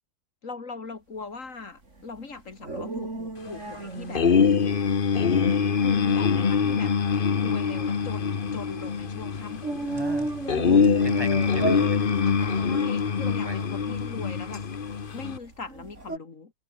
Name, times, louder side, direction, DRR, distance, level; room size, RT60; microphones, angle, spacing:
voice 1, 0.4-4.3 5.8-6.9 7.3-9.9 12.6-14.6 15.1-16.5, left 4 dB, 75° left, 2.8 m, -40 dB
sound 1, 1.9-16.2, right 2 dB, 65° right, 4.6 m, -36 dB
sound 2, 4.1-15.4, left 6 dB, 45° left, 1.2 m, -24 dB
voice 2, 9.9-12.7 13.3-13.6, equal, 20° right, 4.4 m, -40 dB
omnidirectional pair, 1.4 m